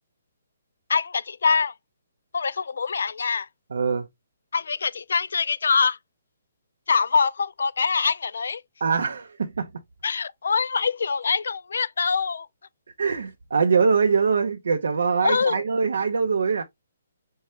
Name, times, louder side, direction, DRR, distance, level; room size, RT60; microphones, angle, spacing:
voice 1, 0.9-1.7 2.3-3.5 4.5-6.0 6.9-8.6 10.0-12.5 15.2-15.6, left 5 dB, 65° left, 0.3 m, -24 dB
voice 2, 3.7-4.1 8.8-9.7 13.0-16.6, right 5 dB, 75° right, 0.6 m, -23 dB
5.4 x 2.1 x 3.0 m
hypercardioid pair, 175°, 0 cm